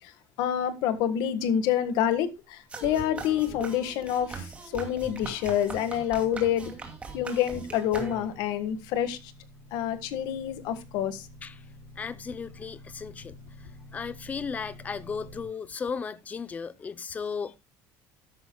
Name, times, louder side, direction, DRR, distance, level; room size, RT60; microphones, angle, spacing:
voice 1, 0.4-6.7 7.1-9.2 9.7-11.3, left 10 dB, 75° left, 1.6 m, -27 dB
sound 1, 2.7-8.5, right 4 dB, 15° right, 2.4 m, -40 dB
sound 2, 5.8-15.5, left 1 dB, 35° right, 2.2 m, -51 dB
voice 2, 12.0-17.6, left 5 dB, 20° left, 0.6 m, -36 dB
13.5 x 11.0 x 2.3 m
cardioid pair, 165°, 7 cm